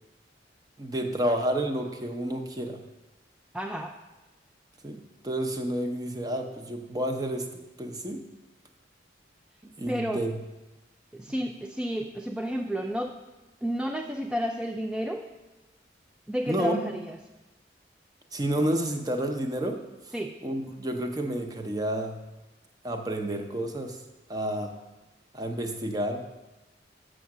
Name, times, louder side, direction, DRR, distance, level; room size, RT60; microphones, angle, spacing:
voice 1, 0.8-2.8 4.8-7.5 7.8-8.2 9.8-10.4 16.5-16.9 18.3-19.8 20.4-22.2 22.8-24.0 24.3-24.7 25.3-26.2, right 1 dB, 20° right, 4 dB, 0.7 m, -30 dB
voice 2, 3.5-4.0 9.9-10.3 11.1-13.2 13.6-15.3 16.3-17.2 20.1-20.4, equal, 5° right, 1 dB, 0.3 m, -31 dB
7.0 x 6.4 x 6.0 m, 1.1 s
head